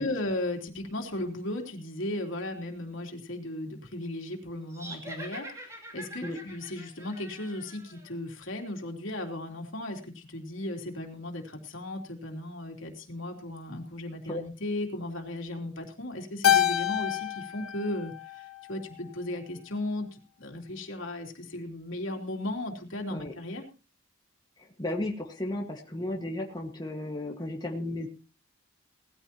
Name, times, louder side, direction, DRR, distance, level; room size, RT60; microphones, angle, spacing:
voice 1, 0.0-23.6, left 1 dB, 70° left, 3 dB, 3.3 m, -36 dB
sound 1, 4.7-8.1, right 1 dB, 15° right, 2.9 m, -44 dB
Keyboard (musical), 16.4-19.0, left 11 dB, 90° left, 0.8 m, -27 dB
voice 2, 24.6-28.1, left 1 dB, 20° left, 1 dB, 1.7 m, -34 dB
19.5 x 14.5 x 3.0 m, 0.33 s
head